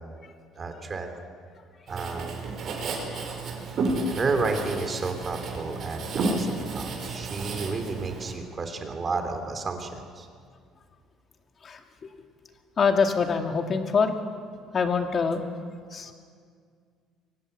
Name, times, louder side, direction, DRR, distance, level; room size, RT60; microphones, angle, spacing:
voice 1, 0.6-1.1 1.9-2.4 4.1-10.3, right 3 dB, 30° right, 6 dB, 3.0 m, -31 dB
Writing, 1.9-8.3, right 2 dB, 45° right, 5.4 m, -32 dB
voice 2, 12.8-14.2 14.7-15.4 15.9-16.1, left 5 dB, 35° left, 5 dB, 2.3 m, -24 dB
24.0 x 19.0 x 8.1 m, 2.1 s
cardioid pair, 130°, 0 cm